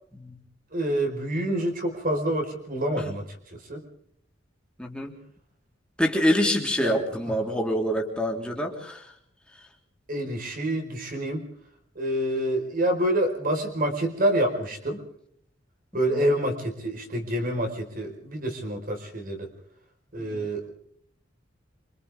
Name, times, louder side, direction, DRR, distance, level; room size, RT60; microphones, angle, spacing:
voice 1, 0.7-3.3 3.7-3.8 6.8-7.3 10.1-11.4 11.9-15.0 15.9-19.5 20.1-20.7, right 1 dB, 45° right, 4 dB, 4.8 m, -27 dB
voice 2, 4.8-5.1 6.0-9.0 16.1-16.3 20.2-20.5, equal, 5° left, 0 dB, 3.4 m, -26 dB
27.5 x 26.0 x 3.6 m, 0.66 s
head